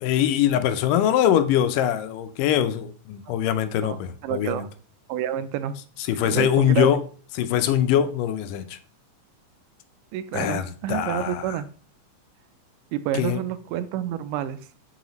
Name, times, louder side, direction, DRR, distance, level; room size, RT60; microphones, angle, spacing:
voice 1, 0.0-4.7 6.0-7.0 7.4-8.8 10.3-11.6 13.1-13.4, left 10 dB, 90° left, 2.2 m, -23 dB
voice 2, 3.8-4.7 5.1-5.8 6.2-6.9 10.1-11.7 12.9-14.6, right 11 dB, 85° right, 2.2 m, -29 dB
7.9 x 4.7 x 3.0 m
omnidirectional pair, 3.7 m